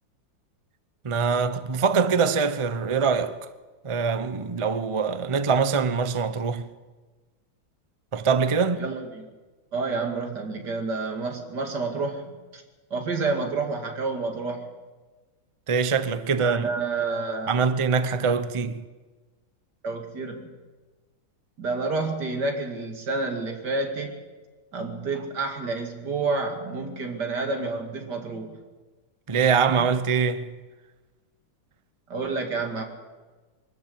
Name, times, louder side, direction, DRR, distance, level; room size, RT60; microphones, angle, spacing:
voice 1, 1.0-3.5 3.8-6.7 8.1-8.9 15.7-16.7 17.5-18.8 29.3-30.5, right 5 dB, 40° right, 0.4 m, -23 dB
voice 2, 8.8-9.3 9.7-12.6 12.9-14.7 16.4-17.7 19.8-20.5 21.6-24.2 24.7-28.6 29.8-29.9 32.1-32.8, right 3 dB, 65° right, 2.9 m, -29 dB
23.0 x 13.5 x 8.6 m
omnidirectional pair, 2.0 m